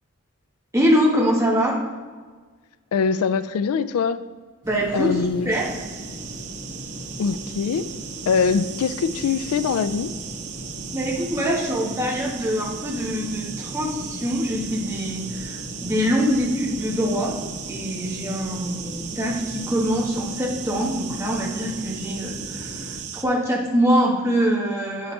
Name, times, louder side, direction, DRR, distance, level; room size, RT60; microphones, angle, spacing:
voice 1, 0.7-1.8 4.6-5.7 10.9-17.3 17.7-25.1, equal, 15° right, -3 dB, 1.3 m, -24 dB
voice 2, 2.9-4.2 4.9-5.5 7.2-7.9 8.3-10.1, left 5 dB, 80° left, 14 dB, 0.3 m, -23 dB
sound 1, 4.6-23.0, equal, 35° right, 2.3 m, -38 dB
sound 2, 5.5-23.3, right 8 dB, 85° right, 0.6 m, -37 dB
8.2 x 7.1 x 3.3 m, 1.5 s
head